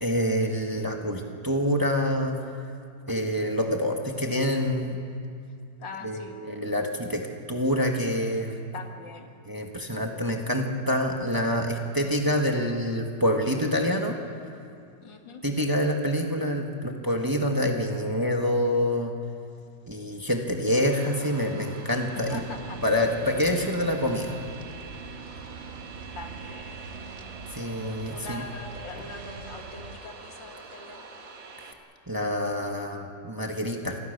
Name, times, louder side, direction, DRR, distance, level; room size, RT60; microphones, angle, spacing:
voice 1, 0.0-2.4 3.1-5.0 6.0-8.5 9.5-14.2 15.4-19.1 19.9-22.4 22.8-24.4 27.5-28.4 32.1-34.0, equal, 10° right, 2 dB, 1.6 m, -26 dB
voice 2, 5.8-6.4 8.7-9.3 15.0-15.4 22.0-22.8 26.2-26.8 28.1-31.1, left 3 dB, 80° left, 3 dB, 2.7 m, -42 dB
airplane-interior-volo-inflight HI fq (window), 20.7-31.7, right 4 dB, 85° right, 2.7 m, -45 dB
sound 1, 22.2-30.0, right 4 dB, 40° right, 1.3 m, -43 dB
26.5 x 20.5 x 6.8 m, 2.5 s
omnidirectional pair, 2.0 m